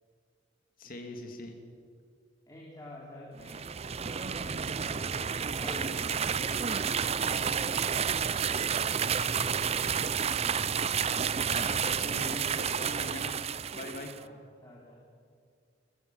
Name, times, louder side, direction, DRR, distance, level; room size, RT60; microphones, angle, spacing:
voice 1, 0.8-1.5 11.4-13.3 13.7-14.1, left 1 dB, 50° left, 4 dB, 2.9 m, -41 dB
voice 2, 2.5-3.6 4.0-10.5 12.8-13.2 13.7-14.4 14.6-15.0, left 1 dB, 20° left, -4 dB, 3.5 m, -51 dB
sound 1, 3.4-14.2, right 7 dB, 35° right, 0.5 m, -30 dB
Packing tape duct tape, 5.4-6.6 6.9-7.0 7.2-7.3 7.8-8.2 9.2-9.4 10.0-10.1, equal, 5° left, 3.4 m, -44 dB
22.0 x 20.5 x 7.3 m, 2.2 s
head